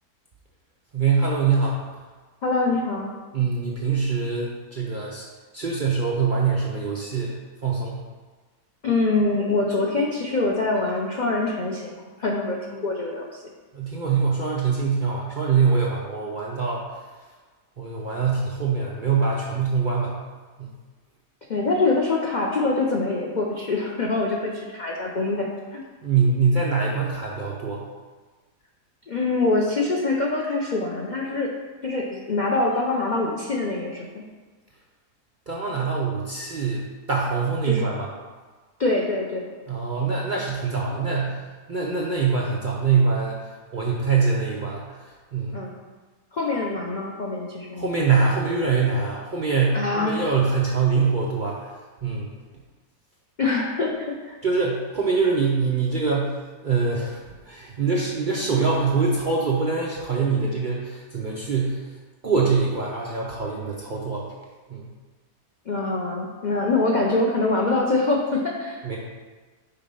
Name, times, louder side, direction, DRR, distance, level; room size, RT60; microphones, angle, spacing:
voice 1, 0.9-1.8 3.3-5.2 5.5-7.3 7.6-8.0 13.7-17.0 17.8-20.1 20.6-20.7 26.0-27.8 35.5-38.1 39.7-45.6 47.7-51.7 52.0-52.3 54.4-56.4 56.6-61.9 62.2-64.3 64.7-64.9 68.8-69.0, right 5 dB, 55° right, -4 dB, 0.5 m, -24 dB
voice 2, 2.4-3.1 8.8-11.9 12.2-13.3 21.5-25.8 29.1-31.5 31.8-34.2 37.6-37.9 38.8-39.5 45.5-45.7 46.3-47.9 49.7-50.1 53.4-54.4 65.7-68.9, left 3 dB, 85° left, -2 dB, 0.4 m, -24 dB
5.6 x 4.2 x 5.4 m, 1.4 s
omnidirectional pair, 1.8 m